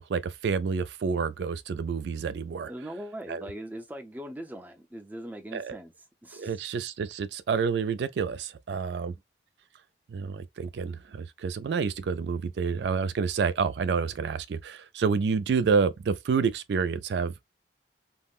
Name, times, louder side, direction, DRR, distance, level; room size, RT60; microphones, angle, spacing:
voice 1, 0.0-2.7 3.3-3.5 5.5-5.7 6.3-9.1 10.1-17.4, right 5 dB, 70° right, 0.3 m, -28 dB
voice 2, 2.7-5.9 6.2-6.5, right 1 dB, 10° right, 0.5 m, -41 dB
3.6 x 2.1 x 2.3 m
head